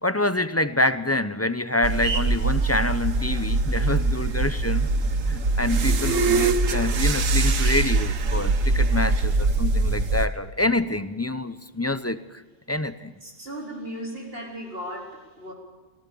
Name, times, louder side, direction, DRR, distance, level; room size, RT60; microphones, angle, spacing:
voice 1, 0.0-4.9 5.2-12.2 12.7-13.1, left 2 dB, 15° left, 12 dB, 0.6 m, -26 dB
sound 1, 1.8-10.3, right 3 dB, 85° right, 1.6 m, -23 dB
voice 2, 13.2-15.5, equal, 45° right, -2 dB, 4.5 m, -36 dB
24.5 x 18.0 x 7.0 m, 1.2 s
omnidirectional pair, 1.3 m